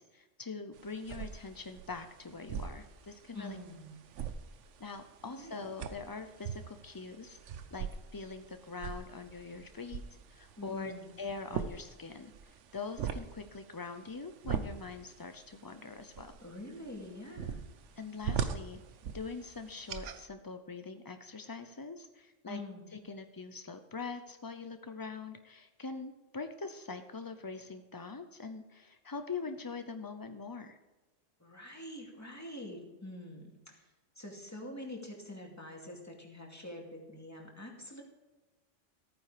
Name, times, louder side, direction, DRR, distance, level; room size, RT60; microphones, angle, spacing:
voice 1, 0.0-3.6 4.8-7.4 7.7-10.0 10.3-16.4 18.0-18.8 19.1-22.6 22.9-30.8, left 4 dB, 35° left, 8 dB, 0.3 m, -43 dB
sound 1, 0.7-20.2, right 7 dB, 75° right, 1.1 m, -42 dB
voice 2, 3.3-4.0 5.3-5.6 10.6-11.1 16.4-17.7 22.4-22.9 31.4-33.9 34.2-38.0, left 1 dB, 15° left, 0 dB, 2.3 m, -46 dB
14.5 x 9.3 x 5.0 m, 1.2 s
omnidirectional pair, 1.3 m